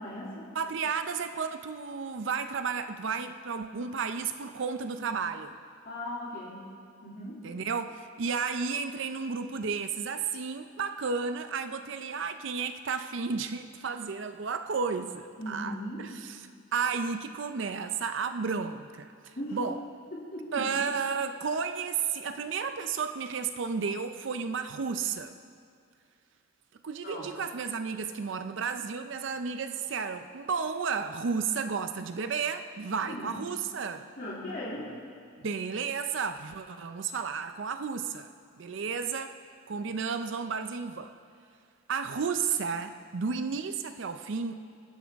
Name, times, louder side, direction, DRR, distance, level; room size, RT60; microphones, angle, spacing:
voice 1, 0.0-0.4 5.8-6.6 7.0-7.5 15.4-16.1 19.3-19.6 20.1-20.7 27.0-27.3 33.1-33.4 34.2-34.9, left 1 dB, 45° left, -7 dB, 2.6 m, -38 dB
voice 2, 0.5-5.6 7.4-19.8 20.5-25.4 26.8-34.1 35.4-38.3 38.6-39.4 39.7-41.1 41.9-44.6, right 5 dB, 60° right, 9 dB, 0.5 m, -32 dB
22.0 x 11.0 x 3.5 m, 2.3 s
head